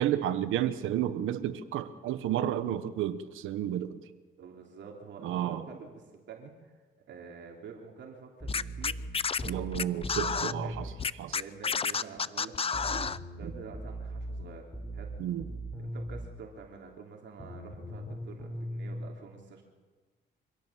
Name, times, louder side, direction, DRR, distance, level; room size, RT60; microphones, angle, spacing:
voice 1, 0.0-4.0 5.2-5.6 9.5-10.9 11.2-11.4 15.2-15.4, right 11 dB, 85° right, 11 dB, 1.2 m, -31 dB
voice 2, 4.4-9.0 9.4-10.0 10.6-14.7 14.9-15.1 15.8-19.6, right 5 dB, 65° right, 1 dB, 3.1 m, -48 dB
sound 1, 8.4-11.0 12.7-16.3 17.4-19.1, right 1 dB, 10° left, 6.8 m, -39 dB
Scratching (performance technique), 8.5-10.5 11.0-13.2, left 5 dB, 30° left, 0.6 m, -30 dB
25.0 x 17.0 x 7.5 m, 1.3 s
cardioid pair, 90°, 20 cm